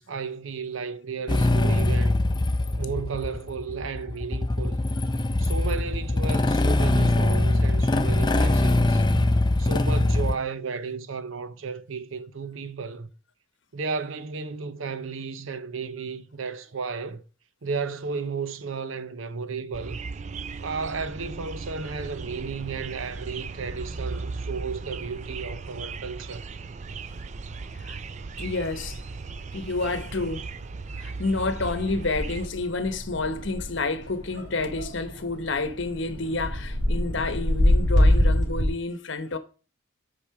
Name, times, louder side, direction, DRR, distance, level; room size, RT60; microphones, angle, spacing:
voice 1, 0.0-2.2 2.8-4.9 5.4-9.0 9.6-13.1 13.7-17.2 17.6-20.0 20.6-26.4, right 5 dB, 85° right, 0.8 m, -33 dB
Motorcycle / Engine starting, 1.3-10.4, left 2 dB, 20° left, 0.5 m, -22 dB
sound 1, 19.7-32.5, right 4 dB, 35° right, 0.3 m, -37 dB
sound 2, 20.3-38.7, left 1 dB, 60° right, 3.8 m, -29 dB
voice 2, 28.4-29.0 29.5-30.5 31.0-39.4, left 3 dB, 65° left, 1.0 m, -29 dB
8.6 x 5.4 x 4.8 m
head